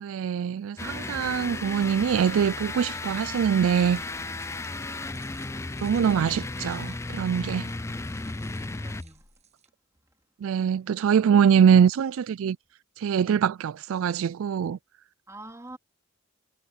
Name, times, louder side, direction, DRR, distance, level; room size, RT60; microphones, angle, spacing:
voice 1, 0.0-4.0 5.8-7.7 10.4-12.6 13.0-14.8, right 7 dB, 65° right, 0.3 m, -23 dB
sound 1, 0.8-9.3, left 2 dB, 15° left, 0.4 m, -34 dB
sound 2, 3.9-9.7, right 5 dB, 30° right, 7.8 m, -58 dB
voice 2, 8.5-9.3 15.3-15.8, right 1 dB, 15° right, 3.0 m, -46 dB
head